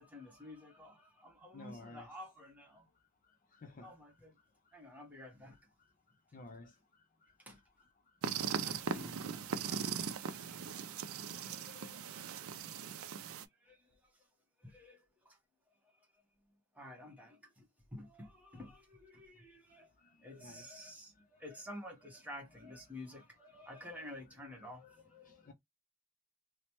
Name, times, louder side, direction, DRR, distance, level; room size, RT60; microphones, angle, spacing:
voice 1, 0.0-2.9 3.8-4.4 4.7-5.6 7.4-7.6 8.5-9.8 10.2-10.8 11.3-12.0 12.6-13.0 13.6-14.2 14.6-15.4 15.8-15.9 16.7-19.9 20.2-25.5, left 1 dB, 5° right, 0.9 m, -51 dB
voice 2, 1.5-2.1 3.5-3.9 6.3-6.8 7.2-7.3 20.0-20.7 25.2-25.5, left 2 dB, 40° left, 0.4 m, -53 dB
sound 1, 8.2-13.4, right 7 dB, 65° right, 0.4 m, -39 dB
3.1 x 2.0 x 2.9 m
head